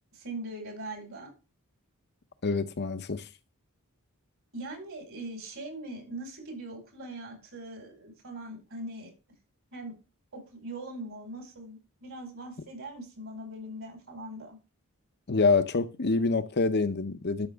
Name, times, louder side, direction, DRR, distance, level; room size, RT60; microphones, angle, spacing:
voice 1, 0.1-1.3 4.5-9.1 9.7-9.9 10.3-14.6, right 1 dB, 65° right, 4.8 m, -41 dB
voice 2, 2.4-3.3 15.3-17.5, left 4 dB, 50° left, 0.8 m, -26 dB
12.5 x 6.0 x 3.5 m
head